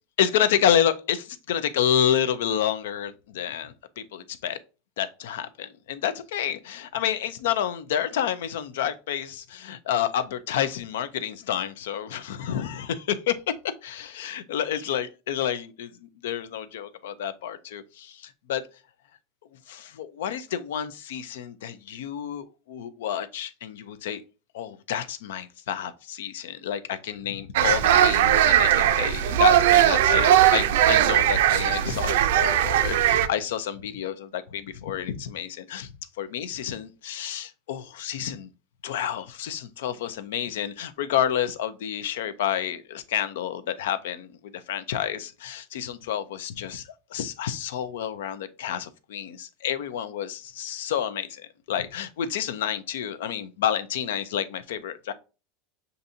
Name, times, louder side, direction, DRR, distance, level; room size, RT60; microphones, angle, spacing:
voice 1, 0.2-4.6 5.0-13.4 13.8-18.6 19.7-24.2 24.5-35.9 36.2-38.5 38.8-51.4 51.7-55.1, left 9 dB, 85° left, 0.6 m, -29 dB
sound 1, 27.5-33.3, right 11 dB, 80° right, 0.4 m, -19 dB
6.9 x 2.6 x 2.6 m
supercardioid pair, 155°, 0 cm